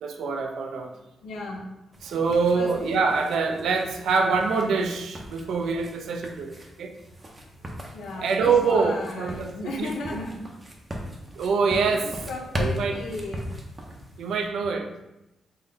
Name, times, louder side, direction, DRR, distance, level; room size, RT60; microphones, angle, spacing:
voice 1, 0.0-0.9 2.0-6.9 8.2-9.5 9.8-9.9 11.3-12.1 12.6-13.0 14.2-14.9, right 4 dB, 85° right, 3 dB, 0.4 m, -25 dB
voice 2, 1.2-1.7 2.5-2.7 7.7-10.4 12.0-13.5, left 2 dB, 90° left, -1 dB, 0.6 m, -35 dB
sound 1, 1.9-14.5, equal, 20° right, 0.6 m, -38 dB
3.8 x 2.1 x 3.8 m, 0.95 s
cardioid pair, 115°, 0 cm